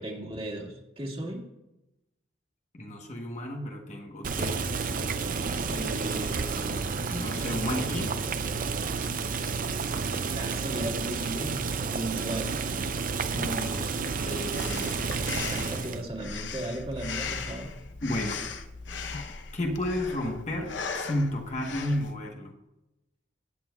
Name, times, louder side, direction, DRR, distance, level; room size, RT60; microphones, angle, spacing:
voice 1, 0.0-1.4 10.0-12.9 15.3-17.7, right 1 dB, 30° right, -1 dB, 2.1 m, -36 dB
voice 2, 2.7-4.9 5.7-8.2 13.3-15.2 18.0-18.4 19.5-22.5, left 1 dB, 40° left, 1 dB, 1.2 m, -33 dB
Boiling, 4.2-16.0, right 4 dB, 45° right, 0.6 m, -31 dB
Breathing, 14.5-22.1, left 5 dB, 65° left, 0.8 m, -38 dB
17.0 x 8.5 x 2.4 m, 0.92 s
head